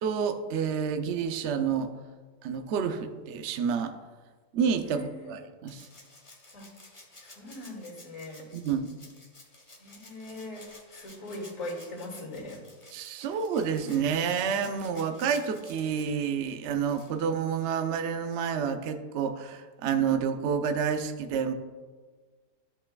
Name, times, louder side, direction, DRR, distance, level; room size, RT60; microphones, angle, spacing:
voice 1, 0.0-1.9 2.4-3.9 4.5-5.9 8.5-8.9 12.9-21.5, right 7 dB, 70° right, 7 dB, 0.6 m, -29 dB
voice 2, 4.8-5.3 6.5-6.7 7.2-8.5 9.8-12.6 13.2-13.4, left 1 dB, 50° left, -2 dB, 2.6 m, -41 dB
Rattle (instrument), 5.7-18.0 19.4-19.5, left 2 dB, 25° left, 0.9 m, -53 dB
13.0 x 5.4 x 2.3 m, 1.4 s
omnidirectional pair, 1.8 m